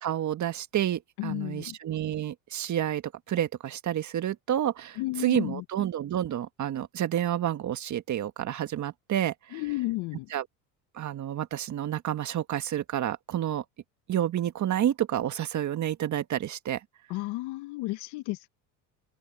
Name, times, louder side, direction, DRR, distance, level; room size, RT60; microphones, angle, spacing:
voice 1, 0.0-3.0 3.3-9.6 10.3-10.4 10.9-13.6 14.1-16.8, right 11 dB, 45° right, 1.8 m, -29 dB
voice 2, 1.2-1.8 5.0-5.6 9.5-10.3 17.1-18.5, left 20 dB, 65° left, 1.0 m, -32 dB
open air
supercardioid pair, 95°, 42 cm